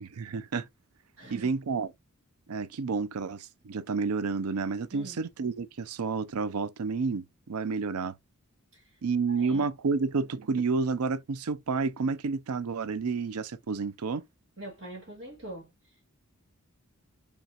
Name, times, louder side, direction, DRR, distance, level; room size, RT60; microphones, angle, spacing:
voice 1, 0.0-0.7 1.3-1.9 2.5-8.1 9.0-14.2, right 4 dB, 85° right, 0.5 m, -30 dB
voice 2, 1.2-1.5 4.9-5.2 8.7-9.0 9.3-9.7 14.6-16.2, right 1 dB, 65° right, 2.2 m, -44 dB
5.1 x 3.4 x 2.9 m
head